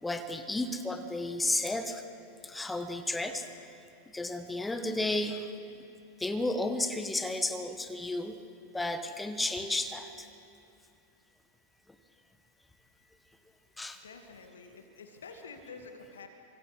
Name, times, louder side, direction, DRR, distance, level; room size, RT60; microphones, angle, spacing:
voice 1, 0.0-2.0 2.4-3.5 4.1-5.5 6.2-8.3 8.7-10.3 13.8-14.0, left 2 dB, 10° left, 8 dB, 1.6 m, -32 dB
voice 2, 14.0-16.3, left 4 dB, 70° left, 5 dB, 2.5 m, -48 dB
29.0 x 24.5 x 6.3 m, 2.8 s
figure-of-eight pair, 90°, 0 cm